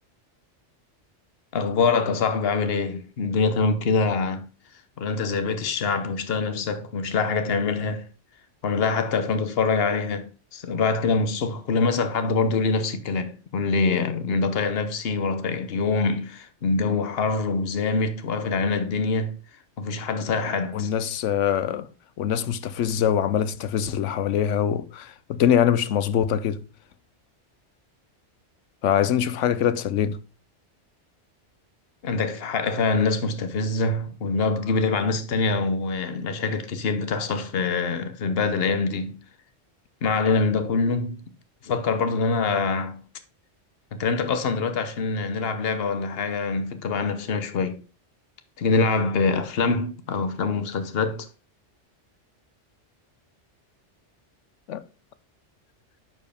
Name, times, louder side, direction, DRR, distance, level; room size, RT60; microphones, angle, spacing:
voice 1, 1.5-4.5 5.0-8.1 8.6-19.4 19.8-20.9 32.0-39.2 40.0-41.2 41.6-43.0 43.9-47.8 48.6-51.3, left 4 dB, 55° left, 1.1 m, -24 dB
voice 2, 20.7-21.9 22.2-26.6 28.8-30.2 54.7-54.8, left 9 dB, 90° left, 1.0 m, -23 dB
10.5 x 4.6 x 3.4 m
omnidirectional pair, 1.2 m